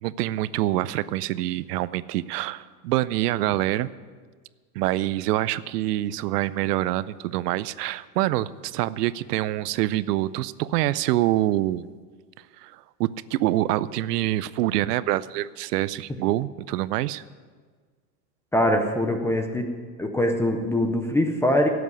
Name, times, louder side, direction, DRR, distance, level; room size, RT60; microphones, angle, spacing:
voice 1, 0.0-3.9 4.8-11.9 12.6-17.2, right 15 dB, 70° right, 18 dB, 0.6 m, -26 dB
voice 2, 18.5-19.7 20.0-21.7, left 1 dB, 5° left, 5 dB, 0.5 m, -23 dB
12.0 x 8.2 x 9.8 m, 1.6 s
supercardioid pair, 140°, 49 cm